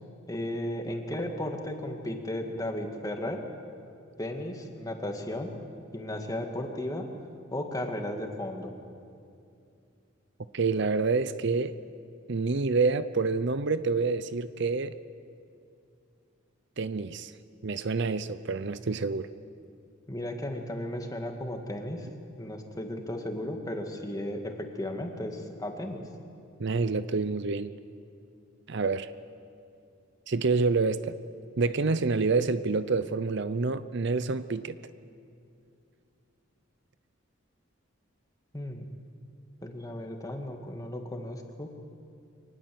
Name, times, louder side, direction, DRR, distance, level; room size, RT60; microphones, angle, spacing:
voice 1, 0.3-3.4 4.2-5.5 5.9-7.1 7.5-8.7 20.1-22.1 22.4-26.0 38.5-38.9 39.6-41.7, left 1 dB, 20° left, 3 dB, 2.0 m, -35 dB
voice 2, 10.5-11.7 12.3-14.9 16.8-17.3 17.6-19.3 26.6-27.7 28.7-29.1 30.3-31.2 31.6-34.8, right 4 dB, 60° right, 13 dB, 0.6 m, -27 dB
24.5 x 19.5 x 7.8 m, 2.5 s
head